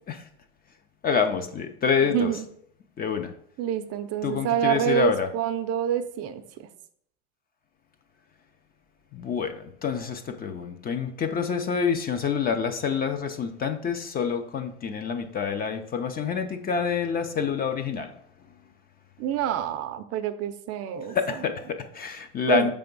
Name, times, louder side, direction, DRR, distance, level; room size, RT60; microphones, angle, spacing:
voice 1, 1.0-2.3 3.0-3.3 4.2-5.3 9.1-18.1 21.1-22.7, left 6 dB, 25° left, 7 dB, 0.5 m, -27 dB
voice 2, 2.1-2.5 3.6-6.7 19.2-21.2 22.5-22.7, right 10 dB, 45° right, 10 dB, 0.5 m, -27 dB
5.9 x 3.4 x 5.2 m, 0.69 s
supercardioid pair, 125°, 35 cm